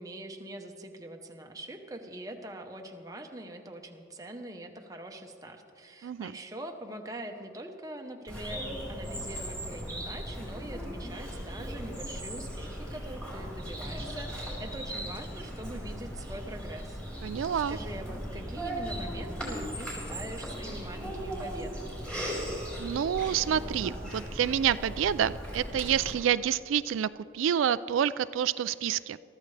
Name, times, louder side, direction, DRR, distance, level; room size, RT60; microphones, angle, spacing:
voice 1, 0.0-17.0 17.7-22.0, right 1 dB, 20° right, 3 dB, 0.9 m, -43 dB
Bird vocalization bird call bird song, 8.3-26.1, equal, 5° left, 4.0 m, -38 dB
voice 2, 17.2-17.8 22.8-29.2, right 9 dB, 90° right, 14 dB, 0.3 m, -28 dB
23.0 x 13.5 x 3.3 m, 2.6 s
head